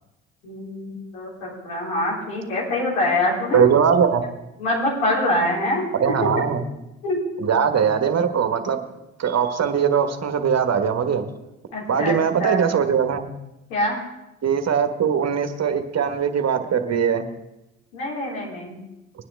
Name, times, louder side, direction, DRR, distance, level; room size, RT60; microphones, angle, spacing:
voice 1, 0.4-3.6 4.6-5.8 7.0-7.2 11.7-12.6 13.7-14.0 17.9-18.7, left 1 dB, 85° left, -6 dB, 4.6 m, -24 dB
voice 2, 3.5-4.2 5.9-6.6 7.4-8.8 9.2-11.3 11.9-13.3 14.4-17.2, right 7 dB, 40° right, 7 dB, 1.4 m, -21 dB
21.0 x 9.6 x 3.5 m, 0.93 s
hypercardioid pair, 50°, 40 cm